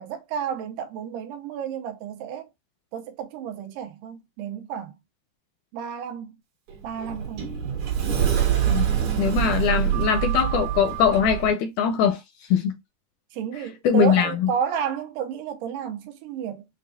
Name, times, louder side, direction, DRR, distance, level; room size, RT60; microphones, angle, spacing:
voice 1, 0.0-2.5 2.9-4.9 5.7-6.4 6.8-7.6 13.3-16.6, right 8 dB, 80° right, 2.3 m, -31 dB
Sliding door, 6.7-11.5, right 9 dB, 65° right, 2.4 m, -25 dB
voice 2, 9.2-12.2 12.5-12.7 13.8-14.5, left 7 dB, 80° left, 1.8 m, -21 dB
6.6 x 2.3 x 2.7 m
omnidirectional pair, 3.8 m